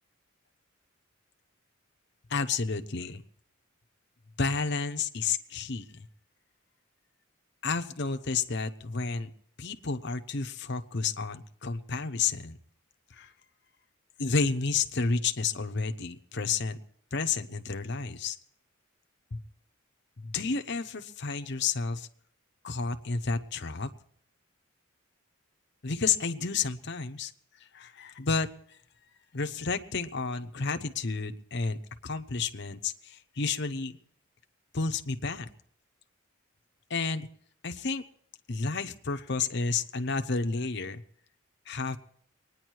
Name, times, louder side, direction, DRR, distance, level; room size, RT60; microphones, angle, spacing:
voice 1, 2.3-3.2 4.4-6.1 7.6-9.3 9.6-12.6 13.1-13.3 14.2-16.8 17.1-18.4 19.3-19.4 20.2-22.1 22.6-23.9 25.8-27.3 27.7-28.5 29.3-31.8 32.0-34.0 34.7-35.5 36.9-37.3 37.6-38.0 38.5-41.0 41.7-42.0, left 4 dB, 55° left, 8 dB, 0.9 m, -31 dB
23.5 x 9.9 x 4.7 m, 0.65 s
head